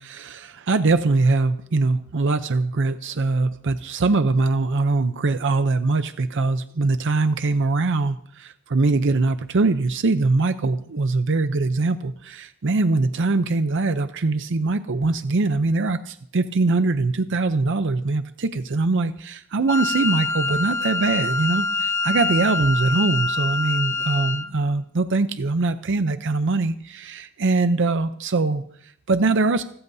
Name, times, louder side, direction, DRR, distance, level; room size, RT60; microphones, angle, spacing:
voice 1, 0.0-29.6, right 3 dB, 60° right, 10 dB, 0.6 m, -22 dB
Wind instrument woodwind instrument, 19.7-24.5, left 3 dB, 15° left, 0.7 m, -25 dB
29.0 x 13.5 x 2.7 m, 0.62 s
head